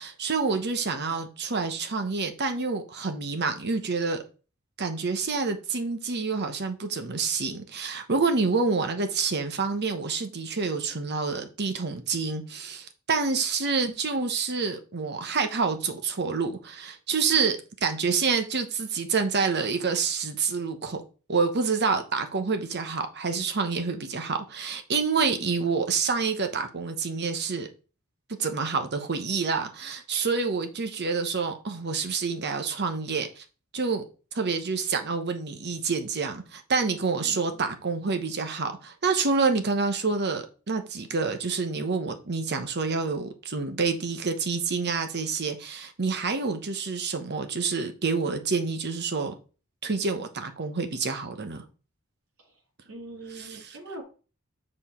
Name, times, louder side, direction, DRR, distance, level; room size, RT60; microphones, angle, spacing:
voice 1, 0.0-4.2 4.8-21.0 21.3-27.7 28.4-33.4 33.7-34.0 34.3-49.3 49.8-51.6 53.3-53.6, right 4 dB, 50° right, 1.0 m, -28 dB
voice 2, 37.2-37.7 52.4-52.6 52.8-54.0, right 2 dB, 90° right, 2.3 m, -43 dB
7.4 x 4.3 x 4.3 m
head